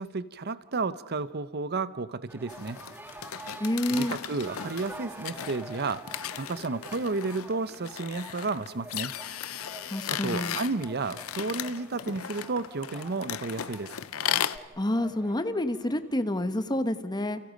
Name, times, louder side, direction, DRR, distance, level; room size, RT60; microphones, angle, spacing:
voice 1, 0.0-2.8 3.9-6.0 6.4-9.1 10.1-13.9, right 3 dB, 50° right, 15 dB, 0.8 m, -32 dB
sound 1, 2.3-16.6, right 1 dB, 10° right, 1.6 m, -47 dB
sound 2, 2.5-14.6, left 10 dB, 90° left, 0.7 m, -36 dB
voice 2, 3.6-4.2 9.9-10.6 14.8-17.4, left 1 dB, 20° left, 10 dB, 1.2 m, -28 dB
29.5 x 29.0 x 5.2 m, 1.2 s
head